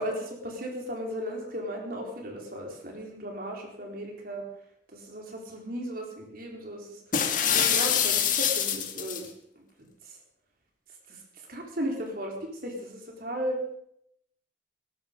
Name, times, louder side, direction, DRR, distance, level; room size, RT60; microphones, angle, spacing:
voice 1, 0.0-4.4 4.9-7.0 7.5-9.3 9.6-10.2 11.1-11.2 11.5-13.6, equal, 55° right, 1 dB, 4.1 m, -36 dB
sound 1, 7.1-9.3, left 8 dB, 50° left, 2.0 m, -25 dB
18.5 x 13.5 x 5.3 m, 0.71 s
head